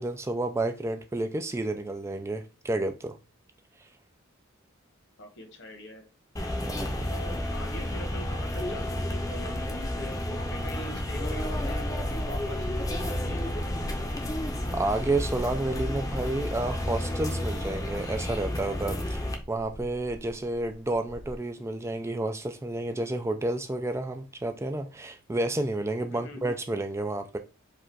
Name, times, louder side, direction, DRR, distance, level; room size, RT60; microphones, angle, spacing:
voice 1, 0.0-3.2 6.6-7.1 14.7-27.4, right 2 dB, 15° right, 0.3 m, -30 dB
voice 2, 5.2-6.1 7.0-13.8 26.1-26.4, equal, 60° left, 1.3 m, -43 dB
sound 1, 6.4-19.4, left 1 dB, 15° left, 0.7 m, -31 dB
sound 2, 11.1-21.4, equal, 85° right, 1.8 m, -43 dB
4.8 x 2.4 x 4.5 m
head